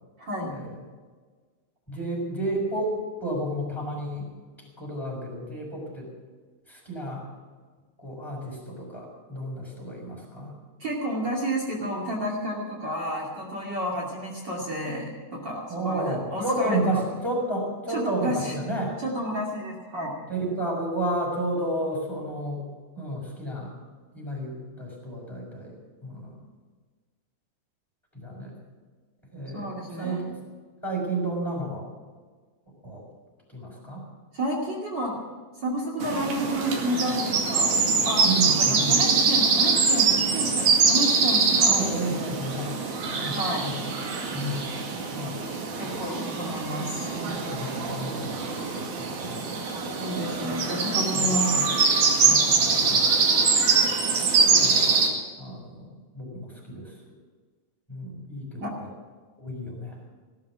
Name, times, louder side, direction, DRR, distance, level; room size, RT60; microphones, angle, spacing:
voice 1, 0.2-0.5 10.8-16.8 17.9-18.5 19.0-20.1 29.5-30.2 34.3-35.2 35.6-37.7 38.0-41.7 43.3-43.7 45.8-47.0 50.0-51.5 52.2-52.3 58.6-58.7, equal, 40° right, -1 dB, 3.0 m, -30 dB
voice 2, 1.9-4.3 4.6-6.1 6.7-7.2 8.0-10.6 15.7-19.0 20.3-22.7 22.9-23.7 24.1-26.5 28.1-28.6 29.3-30.4 30.8-31.9 32.8-33.0 33.5-34.1 38.2-39.0 41.6-44.0 44.3-44.7 45.1-45.5 45.8-46.0 47.1-49.5 50.5-50.6 51.1-51.7 52.2-53.2 54.6-55.0 55.4-57.0 57.9-58.9 59.4-60.0, right 1 dB, 5° left, -5 dB, 5.4 m, -32 dB
sound 1, 36.0-55.1, right 4 dB, 85° right, 3.7 m, -23 dB
17.0 x 12.5 x 6.1 m, 1.5 s
omnidirectional pair, 3.4 m